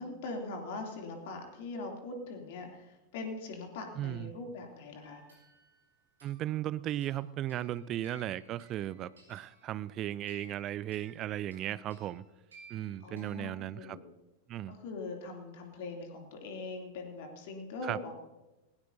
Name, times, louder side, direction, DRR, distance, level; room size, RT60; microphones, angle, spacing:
voice 1, 0.0-5.2 13.0-13.5 13.7-14.0 14.7-18.1, left 3 dB, 50° left, 2 dB, 2.9 m, -41 dB
voice 2, 4.0-4.3 6.2-12.2 12.7-14.0 14.5-14.7 17.8-18.0, right 12 dB, 35° right, 18 dB, 0.5 m, -36 dB
sound 1, 5.0-13.4, right 1 dB, 70° right, 6.1 m, -59 dB
19.5 x 17.5 x 2.8 m, 1.0 s
figure-of-eight pair, 90°, 0 cm